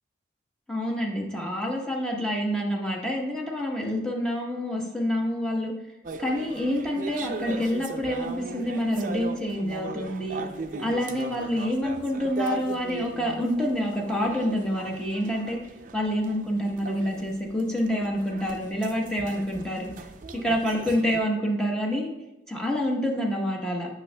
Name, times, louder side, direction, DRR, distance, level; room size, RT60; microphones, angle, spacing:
voice 1, 0.7-5.7 6.2-10.4 10.8-15.6 15.9-19.9 20.4-22.1 22.5-23.9, equal, 5° left, -2 dB, 0.9 m, -27 dB
sound 1, 6.0-21.2, right 3 dB, 45° right, 0.4 m, -38 dB
8.3 x 6.0 x 2.2 m, 0.96 s
head